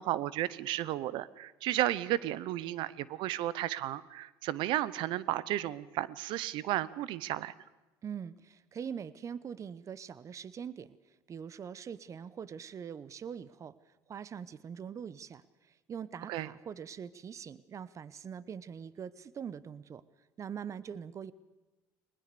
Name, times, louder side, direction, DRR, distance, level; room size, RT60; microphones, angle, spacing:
voice 1, 0.0-7.5 16.3-16.5, right 14 dB, 70° right, 19 dB, 0.8 m, -33 dB
voice 2, 8.0-11.0 11.3-13.7 14.1-20.0 20.4-21.3, right 7 dB, 40° right, 18 dB, 0.8 m, -43 dB
20.5 x 20.0 x 6.8 m, 1.1 s
supercardioid pair, 90°, 9 cm